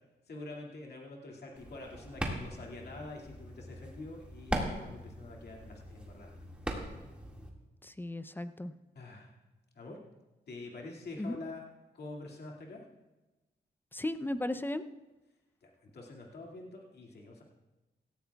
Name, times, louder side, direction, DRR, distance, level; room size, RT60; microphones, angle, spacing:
voice 1, 0.3-7.1 9.0-9.3 9.7-10.0 10.5-11.6 11.9-12.8 15.6-17.4, left 2 dB, 65° left, -1 dB, 2.3 m, -46 dB
sound 1, 1.6-7.5, right 1 dB, 5° right, 2.0 m, -40 dB
voice 2, 7.8-8.7 11.2-11.3 13.9-14.8, left 1 dB, 10° left, 11 dB, 0.6 m, -35 dB
17.0 x 14.5 x 2.3 m, 1.1 s
cardioid pair, 85°, 17 cm